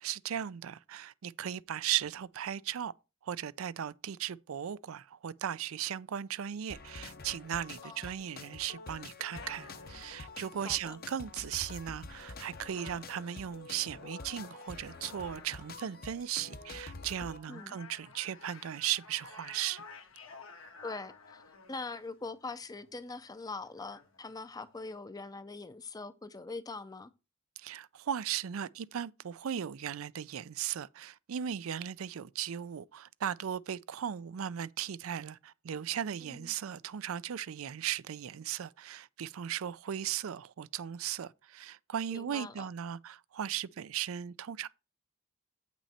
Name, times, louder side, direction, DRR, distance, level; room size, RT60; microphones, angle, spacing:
voice 1, 0.0-2.9 3.2-19.8 27.6-44.7, right 9 dB, 80° right, 0.4 m, -37 dB
sound 1, 6.7-17.4, left 3 dB, 45° left, 0.8 m, -47 dB
sound 2, 9.3-24.9, left 4 dB, 70° left, 1.4 m, -54 dB
voice 2, 10.6-11.0 17.5-17.8 20.8-27.1 36.2-36.6 42.1-42.7, left 3 dB, 20° left, 0.5 m, -43 dB
8.5 x 6.1 x 4.2 m
head